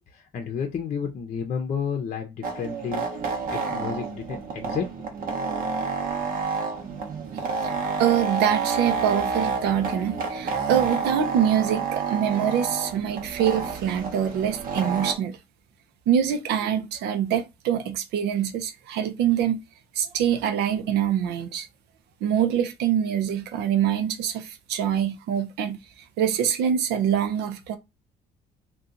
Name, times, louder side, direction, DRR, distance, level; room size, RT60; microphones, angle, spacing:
voice 1, 0.1-3.1 3.5-4.8, left 6 dB, 45° left, 0.6 m, -31 dB
sound 1, 2.4-15.1, right 5 dB, 55° right, 0.8 m, -29 dB
voice 2, 8.0-15.4 16.1-19.6 20.0-21.7 22.2-25.8 26.2-27.8, right 9 dB, 80° right, 0.6 m, -24 dB
2.8 x 2.3 x 3.7 m
cardioid pair, 110°, 17 cm